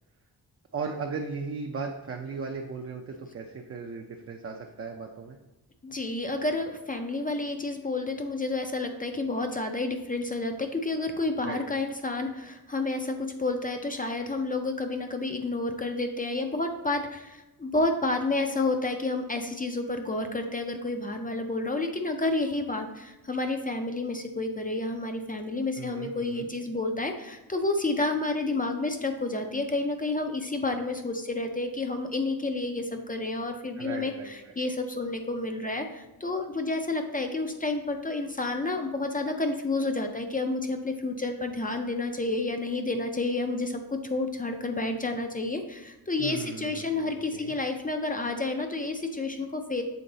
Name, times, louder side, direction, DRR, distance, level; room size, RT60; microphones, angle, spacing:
voice 1, 0.7-5.4 11.4-11.6 25.8-26.5 33.8-34.5 46.2-47.6, right 4 dB, 40° right, 2 dB, 0.4 m, -37 dB
voice 2, 5.8-49.8, left 2 dB, 25° left, 5 dB, 0.4 m, -30 dB
7.0 x 3.8 x 3.8 m, 1.0 s
wide cardioid pair, 165°, 38 cm